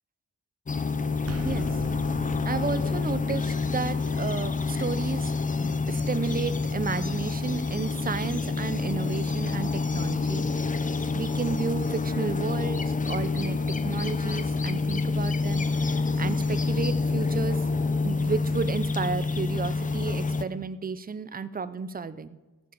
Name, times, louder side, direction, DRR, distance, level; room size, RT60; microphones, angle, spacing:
sound 1, 0.7-20.4, left 4 dB, 25° left, 0.6 m, -27 dB
sound 2, 1.2-6.9, right 6 dB, 50° right, 1.0 m, -43 dB
voice 1, 1.3-1.7 2.4-5.4 5.9-10.5 11.1-17.6 18.0-22.4, right 5 dB, 30° right, 13 dB, 0.5 m, -32 dB
14.5 x 7.3 x 7.0 m, 1.2 s
wide cardioid pair, 150°, 31 cm